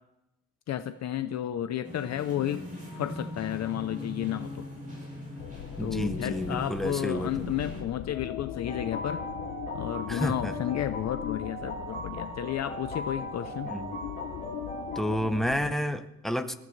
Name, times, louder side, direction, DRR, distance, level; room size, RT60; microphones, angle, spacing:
voice 1, 0.7-2.7 2.9-4.6 5.8-9.3 9.7-13.7, left 11 dB, 50° left, 10 dB, 0.6 m, -32 dB
sound 1, 1.8-7.8, left 1 dB, 25° right, 6.8 m, -40 dB
sound 2, 5.4-15.8, left 11 dB, 85° left, 0.9 m, -40 dB
voice 2, 5.8-7.3 10.1-10.5 13.6-13.9 15.0-16.5, equal, ahead, 7 dB, 0.7 m, -30 dB
sound 3, 8.6-15.1, equal, 25° left, 5.7 m, -38 dB
28.5 x 14.5 x 3.2 m, 0.89 s
cardioid pair, 180°, 34 cm